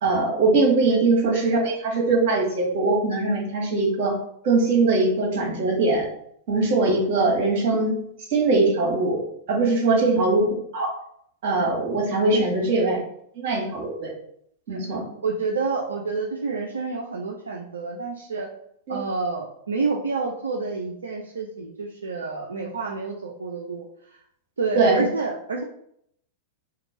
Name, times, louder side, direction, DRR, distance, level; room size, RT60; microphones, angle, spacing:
voice 1, 0.0-4.2 4.4-6.1 6.5-8.0 8.3-9.2 9.5-10.9 11.4-13.0 13.3-14.1 14.7-15.0 18.9-19.0 24.7-25.0, right 3 dB, 50° right, 0 dB, 1.3 m, -21 dB
voice 2, 15.2-18.5 18.9-23.9 24.6-25.6, right 4 dB, 75° right, 1 dB, 0.4 m, -28 dB
2.9 x 2.5 x 3.8 m, 0.70 s
figure-of-eight pair, 95°, 0 cm